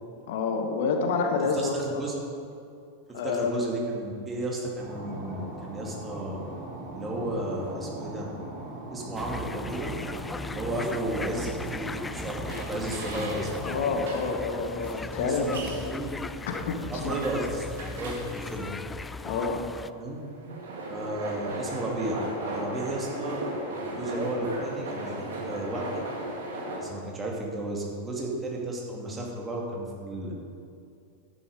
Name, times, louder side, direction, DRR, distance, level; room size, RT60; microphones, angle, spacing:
voice 1, 0.3-1.9 3.1-3.5 13.6-16.0 16.5-17.1 19.2-19.6, left 4 dB, 55° left, 4 dB, 1.4 m, -28 dB
voice 2, 1.5-2.1 3.1-6.4 6.9-8.3 8.9-9.9 10.5-13.5 15.1-16.1 16.9-18.7 19.9-20.2 20.9-23.4 23.9-26.0 26.7-30.3, right 1 dB, 20° right, -2 dB, 2.5 m, -33 dB
sound 1, 4.8-14.1, right 1 dB, 35° right, 3.2 m, -40 dB
sound 2, 9.1-19.9, left 3 dB, 10° left, 0.3 m, -38 dB
sound 3, 12.5-26.8, right 1 dB, 60° right, 2.2 m, -37 dB
11.0 x 9.5 x 5.2 m, 2.5 s
figure-of-eight pair, 90°, 0 cm